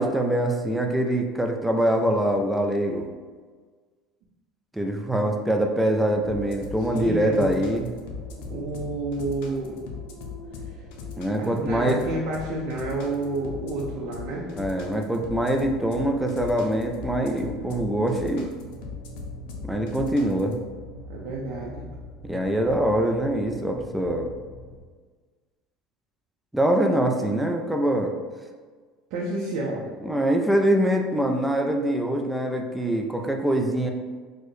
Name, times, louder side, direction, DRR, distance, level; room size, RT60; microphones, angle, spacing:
voice 1, 0.0-3.0 4.7-7.9 11.2-12.0 14.6-18.5 19.6-20.6 22.2-24.3 26.5-28.1 30.0-33.9, right 1 dB, 5° right, 2 dB, 0.3 m, -24 dB
sound 1, 6.1-24.8, equal, 55° left, 1.4 m, -43 dB
sound 2, 6.3-20.5, left 6 dB, 75° left, 0.6 m, -39 dB
voice 2, 6.9-7.6 8.5-9.8 11.4-14.5 21.1-21.8 29.1-29.8, right 2 dB, 60° right, -3 dB, 0.5 m, -30 dB
4.3 x 2.1 x 3.1 m, 1.5 s
cardioid pair, 150°, 0 cm